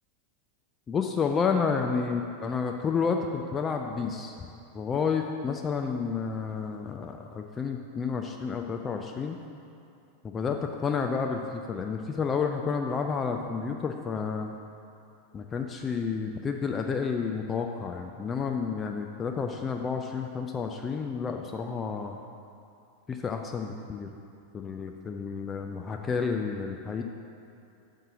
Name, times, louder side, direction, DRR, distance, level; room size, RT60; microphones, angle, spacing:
voice 1, 0.9-4.3 4.7-9.4 10.2-14.5 15.3-22.2 23.1-24.1 24.5-27.0, left 5 dB, 20° left, 3 dB, 0.4 m, -30 dB
5.4 x 5.4 x 5.9 m, 2.5 s
figure-of-eight pair, 90°, 0 cm